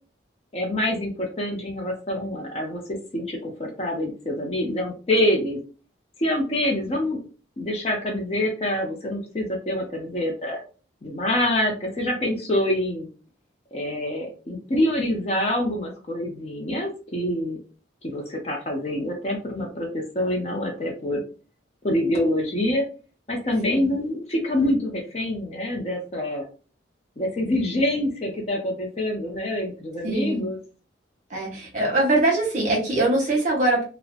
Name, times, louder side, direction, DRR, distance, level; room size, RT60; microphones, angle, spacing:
voice 1, 0.5-5.6 6.2-7.2 7.6-10.6 11.0-13.1 13.7-17.6 18.0-21.2 21.8-22.8 23.3-26.4 27.2-30.6, left 1 dB, 35° left, 1 dB, 0.5 m, -26 dB
voice 2, 30.0-30.4 31.3-33.8, right 2 dB, 40° right, -2 dB, 0.9 m, -22 dB
2.5 x 2.1 x 2.4 m, 0.36 s
head